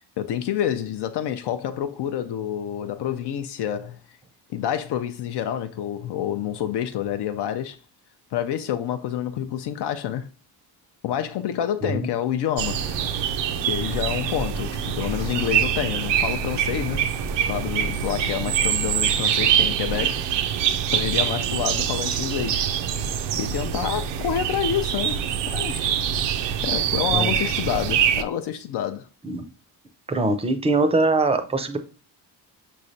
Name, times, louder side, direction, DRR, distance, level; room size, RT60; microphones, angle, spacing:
voice 1, 0.0-4.0 4.5-7.8 8.3-10.3 11.0-12.8 13.7-17.0 17.4-20.2 20.9-22.7 23.4-25.2 25.5-25.9 26.6-29.1, left 10 dB, 70° left, 0.5 m, -28 dB
sound 1, 12.6-28.2, right 9 dB, 80° right, 0.5 m, -24 dB
sound 2, 12.8-20.2, left 2 dB, 45° left, 0.9 m, -42 dB
voice 2, 30.1-31.8, right 3 dB, 15° right, 0.4 m, -22 dB
5.6 x 3.2 x 2.6 m
cardioid pair, 115°, 43 cm